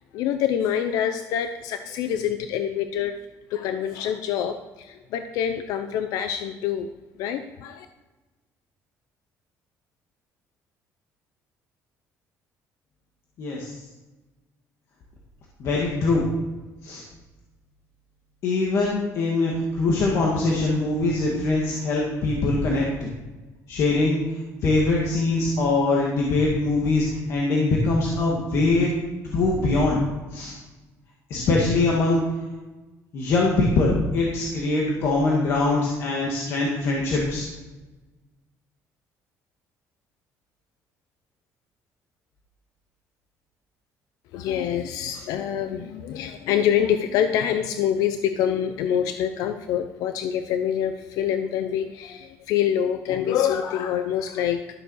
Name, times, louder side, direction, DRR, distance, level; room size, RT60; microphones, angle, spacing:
voice 1, 0.1-3.1 3.5-6.9 7.2-7.9 44.3-54.6, left 9 dB, 90° left, 8 dB, 0.7 m, -26 dB
voice 2, 13.4-13.7 15.6-16.3 16.8-17.0 18.4-23.1 23.7-24.2 24.6-28.9 29.3-30.0 30.3-30.6 31.3-32.2 33.1-37.4, left 3 dB, 50° left, -3 dB, 2.0 m, -22 dB
13.0 x 6.9 x 6.4 m, 1.2 s
cardioid pair, 170°, 6 cm